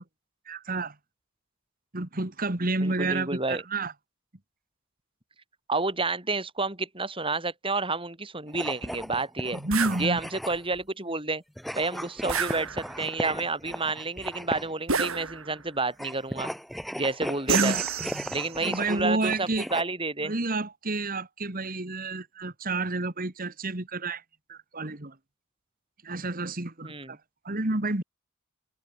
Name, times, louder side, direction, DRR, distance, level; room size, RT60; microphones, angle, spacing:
voice 1, 0.5-0.9 1.9-3.9 9.5-10.2 17.5-18.2 18.6-19.7 20.2-24.2 24.5-25.2 26.0-27.2 27.5-28.0, right 2 dB, 40° right, 1.9 m, -30 dB
voice 2, 2.8-3.6 5.7-9.6 10.0-11.4 11.7-16.5 17.0-17.8 18.3-20.3 26.8-27.2, right 3 dB, 25° right, 6.3 m, -30 dB
sound 1, 8.5-10.8 11.6-14.8 15.9-19.8, equal, ahead, 3.4 m, -37 dB
sound 2, 9.7-10.0 12.3-13.1 14.9-15.7 17.5-18.6, right 6 dB, 70° right, 6.0 m, -29 dB
head